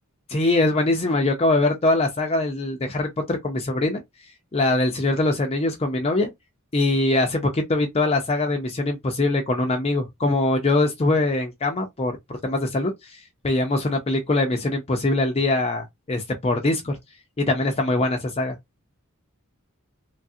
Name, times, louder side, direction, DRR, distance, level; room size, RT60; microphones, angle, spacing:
voice 1, 0.3-4.0 4.5-6.3 6.7-12.2 12.4-17.0 17.4-18.6, left 2 dB, 30° left, 0.5 m, -22 dB
3.2 x 2.4 x 2.6 m
head